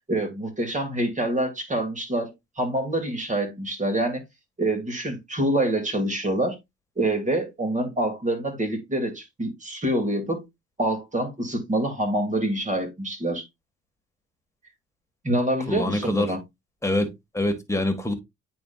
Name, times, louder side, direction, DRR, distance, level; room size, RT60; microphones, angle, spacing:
voice 1, 0.1-4.2 4.6-6.6 7.0-10.4 10.8-13.5 15.2-16.4, right 1 dB, 25° right, 2.5 m, -26 dB
voice 2, 15.7-16.3 16.8-17.1 17.3-18.1, left 1 dB, 10° left, 1.6 m, -25 dB
9.1 x 4.3 x 2.4 m
cardioid pair, 90°, 30 cm